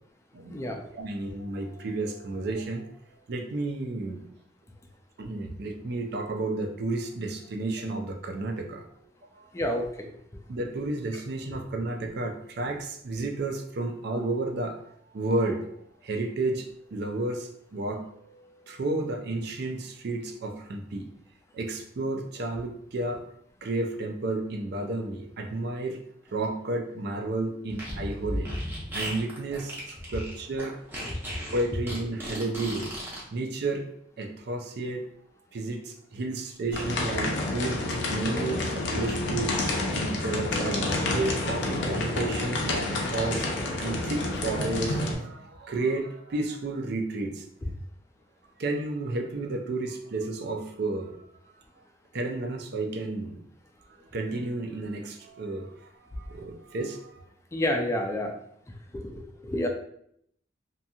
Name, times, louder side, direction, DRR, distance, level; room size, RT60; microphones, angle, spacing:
voice 1, 0.3-2.9 3.3-4.3 5.2-8.8 9.3-9.5 10.5-14.8 15.1-21.1 21.5-23.2 23.6-26.0 26.3-28.5 28.9-30.8 31.5-32.9 33.3-33.9 34.2-35.1 35.5-39.5 39.9-47.4 48.6-51.2 52.1-53.4 54.1-55.7 56.1-57.3, right 2 dB, 60° right, 3 dB, 0.4 m, -32 dB
voice 2, 9.5-9.9 31.1-31.2 47.6-47.7 57.5-58.3 58.9-59.7, left 1 dB, 15° left, 3 dB, 0.3 m, -29 dB
Fart, 27.7-33.2, equal, 10° right, 0.7 m, -35 dB
sound 1, 36.7-45.1, left 2 dB, 70° left, 0.5 m, -29 dB
2.8 x 2.6 x 2.3 m, 0.70 s
head